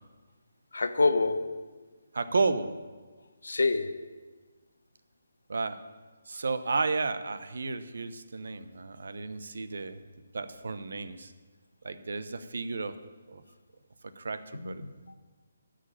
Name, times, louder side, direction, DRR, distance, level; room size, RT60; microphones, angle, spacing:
voice 1, 0.7-1.8 3.4-4.0 14.5-14.9, left 3 dB, 85° left, 0.9 m, -27 dB
voice 2, 2.1-2.7 5.5-5.8 6.3-10.0 10.3-11.3 11.8-12.9 13.3-13.4 14.2-14.8, right 3 dB, 70° right, 0.9 m, -32 dB
13.0 x 5.1 x 8.7 m
hypercardioid pair, 160°, 0 cm